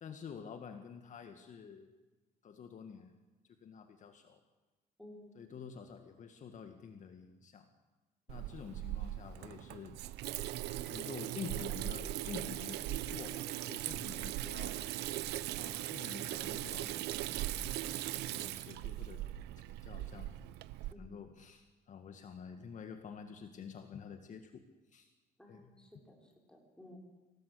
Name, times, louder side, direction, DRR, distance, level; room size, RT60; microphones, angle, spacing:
voice 1, 0.0-1.9 2.4-3.1 3.6-4.4 5.4-7.7 8.3-10.0 10.9-14.8 15.5-17.2 17.9-19.2 19.8-20.3 21.0-24.7 24.9-25.1 25.5-25.8, left 7 dB, 45° left, 7 dB, 1.8 m, -48 dB
voice 2, 5.0-5.4 20.9-21.2 25.4-27.0, left 1 dB, 5° left, 0 dB, 6.5 m, -56 dB
Water tap faucet / Sink (filling or washing), 8.3-20.9, right 14 dB, 85° right, 0.9 m, -39 dB
25.5 x 17.5 x 8.4 m, 1.2 s
cardioid pair, 110°, 17 cm